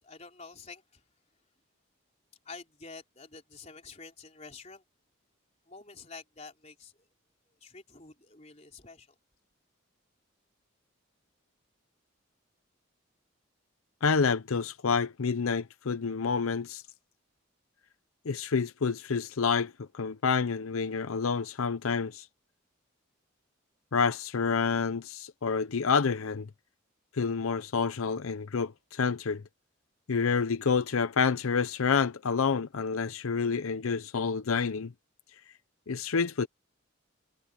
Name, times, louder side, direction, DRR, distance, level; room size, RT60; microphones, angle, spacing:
voice 1, 0.0-1.0 2.4-4.8 5.7-7.1 7.6-9.1, left 4 dB, 30° left, 3.9 m, -48 dB
voice 2, 14.0-16.8 18.2-22.3 23.9-26.5 27.1-29.4 30.1-34.9 35.9-36.5, left 5 dB, 85° left, 0.6 m, -28 dB
head